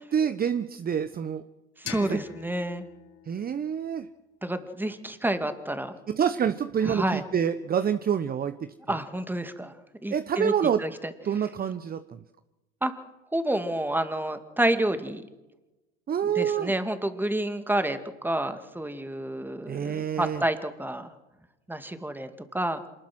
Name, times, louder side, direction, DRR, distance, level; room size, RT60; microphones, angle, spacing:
voice 1, 0.0-1.4 2.0-2.2 3.3-4.1 6.1-8.7 10.1-10.8 11.2-12.2 16.1-16.7 19.7-20.4, right 8 dB, 25° right, 13 dB, 1.0 m, -27 dB
voice 2, 1.8-2.9 4.4-5.9 6.8-7.2 8.9-9.7 10.0-11.1 12.8-12.9 13.3-15.2 16.2-18.0 18.2-21.1 21.7-22.8, right 1 dB, 5° right, 9 dB, 2.3 m, -29 dB
sound 1, 1.9-4.7, left 11 dB, 50° left, 4.4 m, -44 dB
27.0 x 20.0 x 6.2 m, 1.0 s
hypercardioid pair, 80°, 34 cm